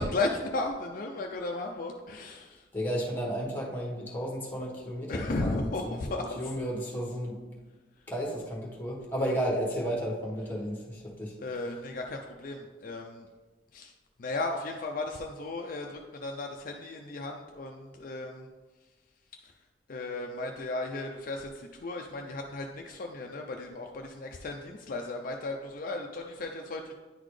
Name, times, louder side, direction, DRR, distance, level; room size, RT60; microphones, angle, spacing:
voice 1, 0.0-2.7 5.1-6.4 11.4-13.3 13.7-13.9 14.2-18.5 19.4-19.5 19.9-27.0, left 2 dB, 50° left, 2 dB, 0.4 m, -35 dB
voice 2, 2.7-7.4 8.1-11.3, equal, 10° left, -3 dB, 1.3 m, -33 dB
9.7 x 4.0 x 3.2 m, 1.3 s
head